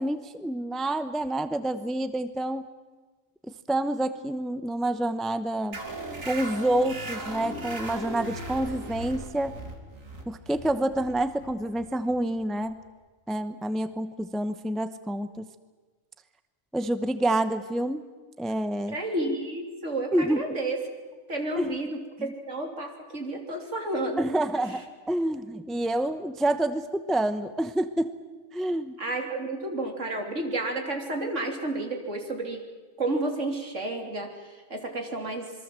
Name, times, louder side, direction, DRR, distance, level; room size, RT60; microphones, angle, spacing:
voice 1, 0.0-2.7 3.7-5.8 6.3-9.5 10.3-12.8 13.3-15.5 16.7-18.0 18.4-18.9 20.1-20.4 21.6-21.7 22.2-22.3 24.2-28.1 28.5-28.9, right 1 dB, ahead, 11 dB, 0.8 m, -28 dB
sound 1, 5.7-12.9, right 2 dB, 85° right, 3.0 m, -38 dB
voice 2, 18.9-20.8 21.3-24.3 24.7-24.8 29.0-32.6 33.0-35.5, right 2 dB, 65° right, 3 dB, 3.6 m, -31 dB
27.0 x 22.5 x 7.7 m, 1.3 s
omnidirectional pair, 1.3 m